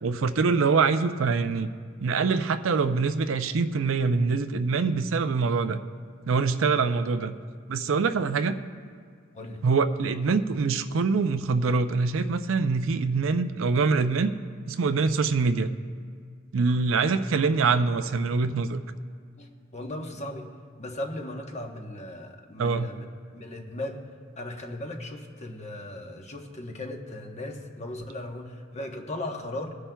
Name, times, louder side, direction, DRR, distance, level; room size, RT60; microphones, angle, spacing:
voice 1, 0.0-1.7 2.0-5.8 6.3-7.4 7.7-8.6 9.6-14.3 14.7-15.7 16.5-18.8 22.6-22.9, right 4 dB, 75° right, 10 dB, 0.5 m, -24 dB
voice 2, 19.4-20.5 20.8-24.0 24.4-29.7, left 1 dB, 35° left, 3 dB, 1.0 m, -37 dB
21.5 x 9.9 x 2.3 m, 2.1 s
head